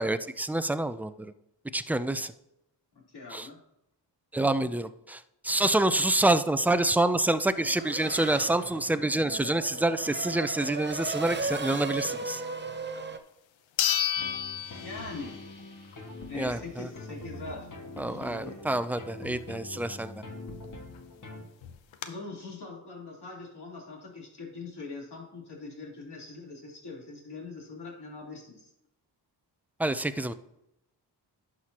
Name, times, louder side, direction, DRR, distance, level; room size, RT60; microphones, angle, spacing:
voice 1, 0.0-1.3 1.7-2.3 3.3-3.5 4.3-12.4 16.3-16.9 18.0-20.2 29.8-30.3, right 2 dB, 5° right, 12 dB, 0.4 m, -27 dB
voice 2, 3.1-3.6 14.7-15.4 16.3-17.7 18.0-18.6 22.0-28.7, left 3 dB, 60° left, -3 dB, 3.5 m, -42 dB
Race car auto racing / Accelerating revving vroom, 7.5-13.2, right 3 dB, 25° right, 0.8 m, -36 dB
sound 1, 13.0-13.1 13.8-15.5 15.9-16.0 20.6-20.7 21.0-21.1 21.6-22.1, left 11 dB, 85° left, 0.8 m, -30 dB
sound 2, 14.2-21.4, left 2 dB, 45° left, 1.8 m, -43 dB
11.0 x 6.3 x 2.9 m, 0.83 s
cardioid pair, 55°, 45 cm